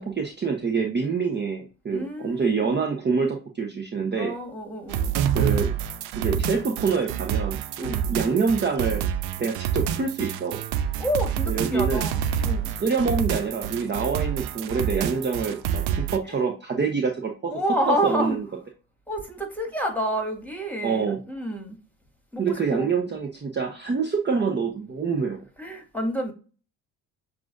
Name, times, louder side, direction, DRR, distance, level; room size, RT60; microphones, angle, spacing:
voice 1, 0.0-4.3 5.3-5.7 6.2-9.0 9.4-10.6 11.5-12.1 12.8-17.5 17.8-18.4 20.8-21.2 22.4-25.4, right 5 dB, 25° right, 0.8 m, -26 dB
voice 2, 1.9-2.8 4.2-5.1 7.8-8.2 11.0-12.7 16.2-16.4 17.5-18.4 19.1-21.8 22.3-22.9 25.6-26.3, equal, 5° left, 1.8 m, -29 dB
sound 1, 4.9-16.2, right 9 dB, 60° right, 0.6 m, -27 dB
7.2 x 2.5 x 2.5 m
hypercardioid pair, 55°, 42 cm